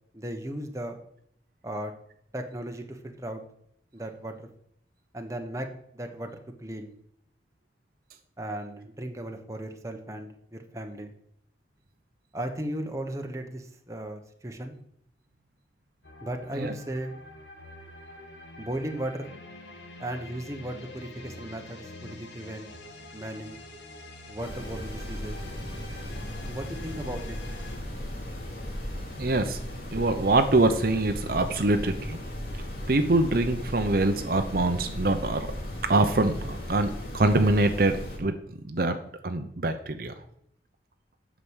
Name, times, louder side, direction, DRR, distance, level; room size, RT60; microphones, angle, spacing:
voice 1, 0.1-1.0 1.6-1.9 2.3-3.4 3.9-4.5 5.1-5.7 5.9-6.3 6.6-6.9 8.4-11.1 12.3-14.8 16.2-17.1 18.6-19.3 20.0-22.7 23.1-23.6 24.3-25.4 26.5-27.4, right 1 dB, 15° right, 4 dB, 1.1 m, -36 dB
sound 1, 16.0-27.8, left 2 dB, 85° left, 1.8 m, -46 dB
sound 2, 24.4-38.2, left 1 dB, 55° left, 2.9 m, -36 dB
voice 2, 29.2-29.6 29.9-32.2 32.9-35.5 35.9-38.3 38.6-39.0 39.2-40.1, right 2 dB, 55° right, 7 dB, 0.8 m, -24 dB
8.9 x 6.1 x 8.0 m, 0.71 s
head